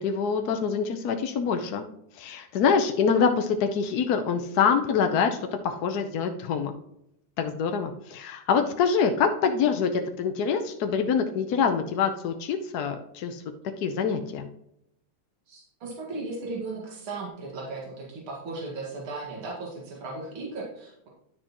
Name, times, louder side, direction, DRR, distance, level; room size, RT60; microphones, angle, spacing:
voice 1, 0.0-1.8 2.2-5.4 5.6-6.7 7.4-13.4 13.8-14.5, left 6 dB, 65° left, 5 dB, 1.0 m, -25 dB
voice 2, 15.5-21.1, right 3 dB, 80° right, -3 dB, 2.7 m, -36 dB
10.5 x 6.6 x 3.0 m, 0.78 s
omnidirectional pair, 2.3 m